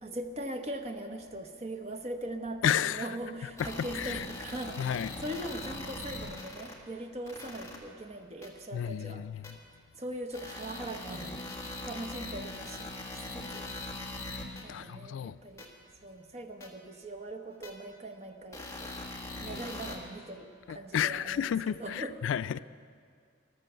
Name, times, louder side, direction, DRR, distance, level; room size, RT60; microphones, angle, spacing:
voice 1, 0.0-9.3 10.0-13.7 14.6-15.7 16.0-19.0 19.4-22.2 22.5-22.6, right 1 dB, 35° right, 0.9 m, -41 dB
voice 2, 2.6-3.1 3.9-4.3 4.8-5.1 8.7-9.6 14.3-14.4 14.7-15.4 20.7-22.6, left 9 dB, 80° left, 0.3 m, -32 dB
sound 1, 3.6-6.7 7.3-7.8 8.4-8.5 9.4-9.5 10.3-14.6 15.6-15.7 16.6-16.7 17.6-17.7 18.5-20.0, left 2 dB, 15° left, 1.6 m, -41 dB
14.0 x 13.0 x 6.7 m
head